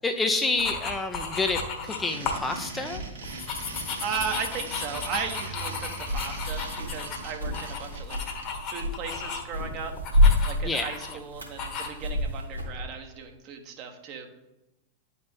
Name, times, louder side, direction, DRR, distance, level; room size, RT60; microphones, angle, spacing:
voice 1, 0.0-3.0 10.6-11.2, left 3 dB, 15° left, 6 dB, 0.6 m, -28 dB
sound 1, 0.6-2.5 2.9-9.6 9.9-11.2 11.6-11.9, left 4 dB, 35° left, 1.3 m, -34 dB
sound 2, 1.7-8.4, right 3 dB, 65° right, 1.8 m, -42 dB
voice 2, 4.0-8.2 8.7-9.9 10.4-14.3, right 6 dB, 40° right, 5 dB, 1.1 m, -36 dB
sound 3, 6.0-12.8, left 1 dB, 85° right, 1.7 m, -28 dB
10.0 x 4.2 x 3.5 m, 0.96 s
figure-of-eight pair, 90°, 0 cm